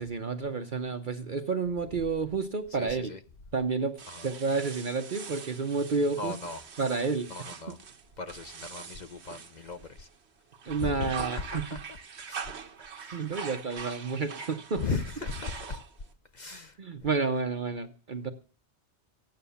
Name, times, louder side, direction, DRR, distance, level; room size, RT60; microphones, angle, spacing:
voice 1, 0.0-3.1 3.5-4.0 4.2-6.3 6.8-7.3 10.7-11.6 13.1-14.8 16.5-18.3, right 4 dB, 50° right, 1.0 m, -30 dB
voice 2, 2.7-3.2 4.1-4.3 6.2-6.6 7.3-7.8 8.2-10.1 10.8-12.0 12.3-12.4 12.9-13.3 14.8-15.8 16.3-16.8, left 4 dB, 45° left, 0.8 m, -37 dB
sound 1, 4.0-10.2 10.5-16.1, right 6 dB, 70° right, 1.3 m, -43 dB
15.5 x 9.3 x 6.9 m
omnidirectional pair, 1.2 m